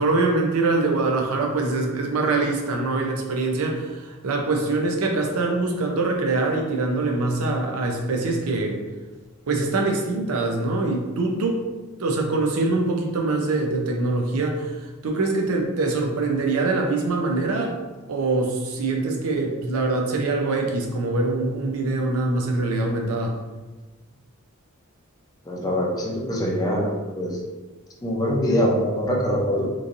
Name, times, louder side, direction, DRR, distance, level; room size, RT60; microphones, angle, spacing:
voice 1, 0.0-8.8 9.5-11.6 12.0-14.7 15.0-17.8 18.1-23.3, right 3 dB, 75° right, 2 dB, 0.5 m, -24 dB
voice 2, 25.4-27.4 28.0-29.7, equal, 15° left, -3 dB, 0.5 m, -23 dB
3.1 x 2.5 x 2.5 m, 1.2 s
head